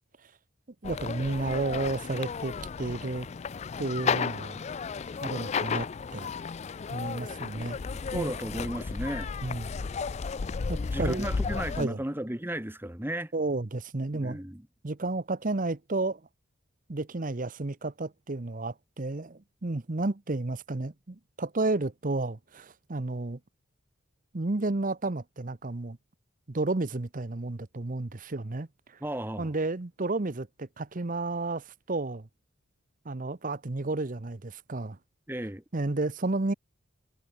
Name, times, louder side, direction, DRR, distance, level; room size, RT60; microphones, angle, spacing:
sound 1, 0.8-11.9, left 5 dB, 30° left, 0.3 m, -33 dB
voice 1, 0.8-3.3 3.8-4.6 5.2-5.9 6.1-6.3 6.9-7.8 8.1-8.3 9.4-9.7 10.7-11.2 11.8-12.0 13.3-14.4 14.8-16.2 16.9-23.4 24.3-26.0 26.5-28.7 29.4-32.3 33.0-35.0 35.7-36.5, right 2 dB, 40° right, 0.8 m, -32 dB
voice 2, 8.1-9.3 10.9-13.3 14.1-14.6 29.0-29.5 35.3-35.6, right 1 dB, 10° right, 1.1 m, -34 dB
head